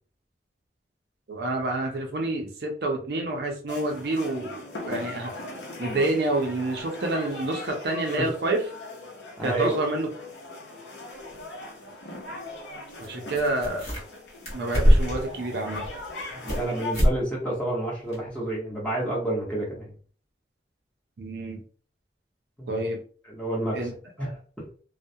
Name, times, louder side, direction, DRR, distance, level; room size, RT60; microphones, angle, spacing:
voice 1, 1.3-5.3 5.8-8.6 9.4-10.1 13.0-13.9 14.5-15.9 21.2-21.6 22.7-23.0 23.7-23.9 24.2-24.3, right 2 dB, 65° right, 2 dB, 0.5 m, -28 dB
sound 1, 3.7-17.0, left 2 dB, 80° left, 0.7 m, -40 dB
voice 2, 9.4-9.8 16.3-19.9 22.6-22.9 23.3-23.8 24.2-24.3 24.6-24.7, right 1 dB, 5° left, -5 dB, 0.9 m, -29 dB
sound 2, 13.0-13.1 13.3-14.2 14.4-15.3 15.7-16.6 16.9-17.2 17.5-17.6 18.1-18.2, equal, 40° left, 0.9 m, -22 dB
2.2 x 2.1 x 2.6 m, 0.42 s
head